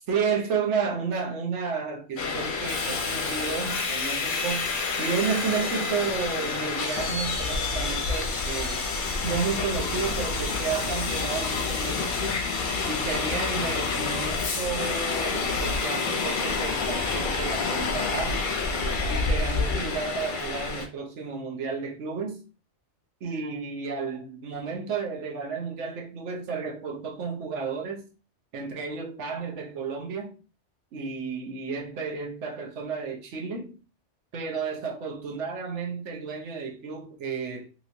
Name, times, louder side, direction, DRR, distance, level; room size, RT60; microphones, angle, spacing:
voice 1, 0.1-4.7 5.0-8.9 9.2-12.4 12.8-18.4 19.1-22.4 23.2-28.1 28.5-30.3 30.9-33.7 34.3-37.7, right 5 dB, 75° right, 1.1 m, -32 dB
Subway metro underground, 2.2-20.9, left 4 dB, 55° left, 0.7 m, -28 dB
3.1 x 3.0 x 2.6 m
omnidirectional pair, 1.2 m